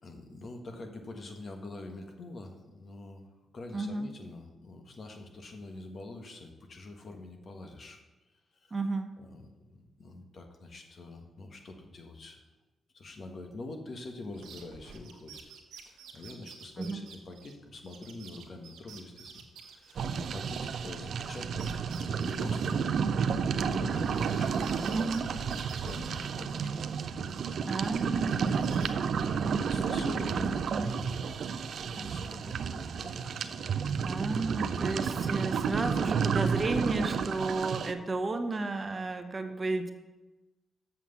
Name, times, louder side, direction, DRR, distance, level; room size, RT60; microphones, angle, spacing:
voice 1, 0.0-3.3 3.5-8.0 8.3-8.8 9.2-12.4 12.9-15.4 15.8-26.7 29.5-31.3 31.8-33.5, left 2 dB, 55° left, 4 dB, 1.5 m, -45 dB
voice 2, 3.7-4.1 8.7-9.1 16.8-17.0 24.9-25.3 27.7-28.4 34.0-39.9, right 3 dB, 35° right, 7 dB, 1.0 m, -32 dB
sound 1, 14.3-20.8 21.1-24.4 24.6-27.0 27.3-28.9, right 7 dB, 90° right, 1.1 m, -51 dB
sound 2, 20.0-37.9, right 6 dB, 70° right, 0.5 m, -31 dB
7.5 x 5.9 x 7.0 m, 1.1 s
cardioid pair, 65°, 0 cm